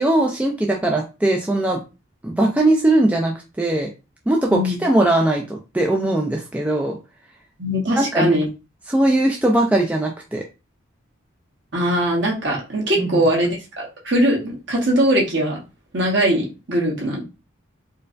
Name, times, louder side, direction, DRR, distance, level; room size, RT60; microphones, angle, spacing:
voice 1, 0.0-1.8 2.2-3.9 4.3-7.0 8.0-8.4 8.9-10.4 13.0-13.1, right 1 dB, 5° right, 0 dB, 0.3 m, -20 dB
voice 2, 7.6-8.5 11.7-15.6 15.9-17.2, equal, 55° right, -1 dB, 1.2 m, -21 dB
4.4 x 2.2 x 2.5 m, 0.29 s
head